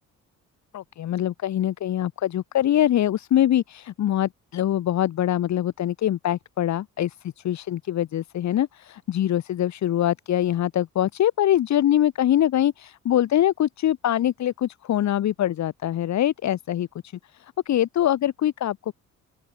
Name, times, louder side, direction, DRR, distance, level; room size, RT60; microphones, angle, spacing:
voice 1, 0.7-16.9 17.3-18.9, left 11 dB, 65° left, 1.7 m, -23 dB
open air
cardioid pair, 90°, 30 cm